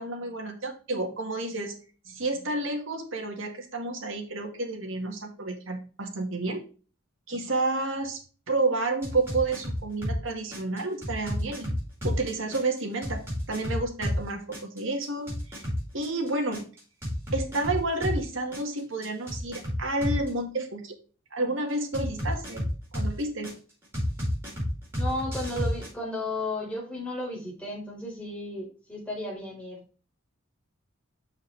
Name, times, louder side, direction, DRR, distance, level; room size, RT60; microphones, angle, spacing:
voice 1, 0.0-1.7 2.1-6.6 7.3-11.7 12.0-15.7 15.9-16.7 17.3-21.0 21.3-22.6 22.9-23.5, right 2 dB, 70° right, 3 dB, 1.9 m, -30 dB
sound 1, 9.0-10.2 10.5-14.2 14.5-18.2 18.5-20.3 21.9-23.5 23.9-25.9, equal, 10° right, 4.6 m, -30 dB
voice 2, 24.9-29.8, left 1 dB, 5° left, -3 dB, 4.5 m, -34 dB
7.2 x 6.2 x 3.4 m, 0.36 s
head